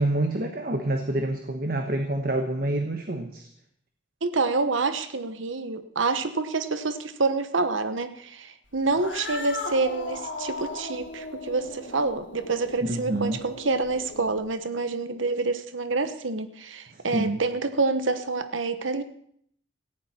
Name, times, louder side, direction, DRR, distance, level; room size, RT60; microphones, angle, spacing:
voice 1, 0.0-3.5 12.9-13.4 17.1-17.4, right 1 dB, 50° right, 5 dB, 1.3 m, -27 dB
voice 2, 4.2-19.0, right 3 dB, 85° right, 10 dB, 1.2 m, -27 dB
Cat, 8.8-14.5, left 2 dB, 75° left, 3.0 m, -37 dB
18.0 x 14.5 x 4.4 m, 0.66 s
head